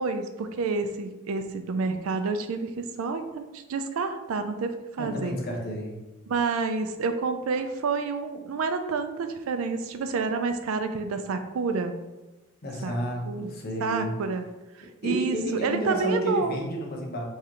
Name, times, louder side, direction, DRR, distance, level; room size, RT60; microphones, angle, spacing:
voice 1, 0.0-5.4 6.3-11.9 12.8-13.0 13.3-14.5 14.7-16.6, right 4 dB, 85° right, 8 dB, 0.4 m, -29 dB
voice 2, 5.0-5.9 12.6-14.1 14.8-17.2, equal, 50° left, -1 dB, 0.8 m, -31 dB
3.7 x 3.1 x 2.8 m, 1.1 s
head